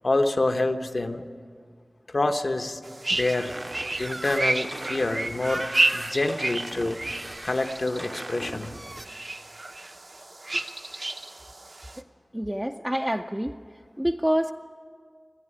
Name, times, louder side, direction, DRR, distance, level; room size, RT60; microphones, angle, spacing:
voice 1, 0.0-1.3 2.1-2.8 3.1-3.5 4.0-5.7 5.9-7.0 7.4-8.7, left 2 dB, 60° left, 6 dB, 1.1 m, -26 dB
sound 1, 2.8-12.0, right 2 dB, 65° right, 1.1 m, -31 dB
sound 2, 3.4-9.1, right 1 dB, 35° right, 0.8 m, -38 dB
voice 2, 12.3-13.6 14.0-14.5, equal, 10° right, 3 dB, 0.5 m, -27 dB
27.5 x 11.0 x 9.9 m, 2.1 s
wide cardioid pair, 60°, 0 cm